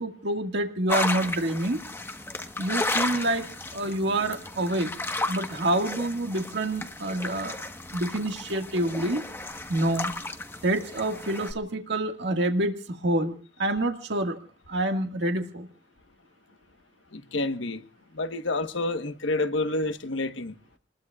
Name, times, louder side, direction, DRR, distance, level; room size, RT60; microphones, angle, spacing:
voice 1, 0.0-1.8 2.6-3.5 3.7-4.9 5.3-7.6 7.9-9.2 9.7-10.1 10.6-14.4 14.7-15.7, right 1 dB, 60° right, 1.8 m, -27 dB
sound 1, 0.9-11.5, left 2 dB, 15° left, 1.2 m, -34 dB
voice 2, 17.1-17.8 18.1-20.5, left 2 dB, 80° left, 1.2 m, -29 dB
29.0 x 20.5 x 2.4 m
head